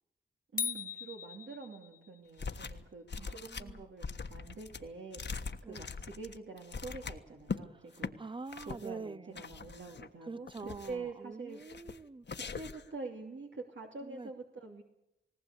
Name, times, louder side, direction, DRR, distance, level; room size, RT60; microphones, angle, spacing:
voice 1, 0.5-8.1 8.7-10.5 10.9-11.6 12.3-14.8, right 4 dB, 75° right, 0 dB, 3.0 m, -46 dB
sound 1, 0.6-2.2, left 6 dB, 45° left, 0.8 m, -38 dB
sound 2, 2.4-2.8 3.1-7.6 7.9-8.1 8.5-8.9 9.4-10.1 10.5-11.1 11.6-12.0 12.3-12.9, left 5 dB, 65° left, 1.4 m, -42 dB
voice 2, 3.2-3.9 5.6-5.9 8.2-9.4 10.2-12.3 14.0-14.3, right 3 dB, 25° right, 20 dB, 0.7 m, -45 dB
19.5 x 18.5 x 8.3 m, 0.86 s
cardioid pair, 50°, 20 cm